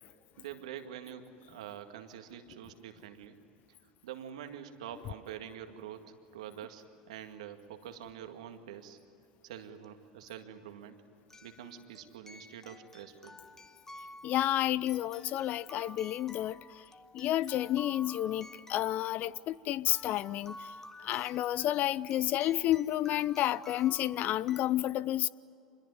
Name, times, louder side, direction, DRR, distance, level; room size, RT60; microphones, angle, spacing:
voice 1, 0.4-3.4 4.0-9.0 9.4-11.0 11.4-13.4, right 9 dB, 75° right, 2.0 m, -46 dB
sound 1, 9.8-9.9 11.3-24.7, left 1 dB, 10° left, 1.3 m, -52 dB
voice 2, 14.2-16.8 17.1-20.7 21.0-25.3, left 13 dB, 50° left, 0.6 m, -30 dB
26.5 x 21.5 x 9.7 m
hypercardioid pair, 80°, 4 cm